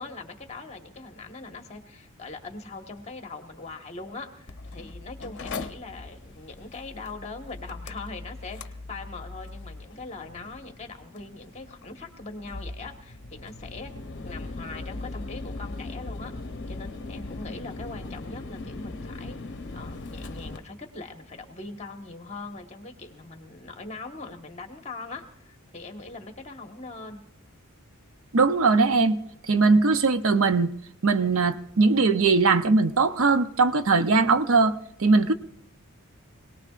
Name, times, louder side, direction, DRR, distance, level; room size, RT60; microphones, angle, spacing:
voice 1, 0.0-13.9 14.2-16.3 16.7-19.4 19.7-27.2, left 3 dB, 30° left, 1.4 m, -41 dB
Mechanical fan, 4.5-20.6, left 3 dB, 55° left, 0.8 m, -39 dB
voice 2, 28.3-29.2 29.5-30.7 31.0-35.3, right 4 dB, 65° right, 0.7 m, -20 dB
25.0 x 18.5 x 2.5 m
head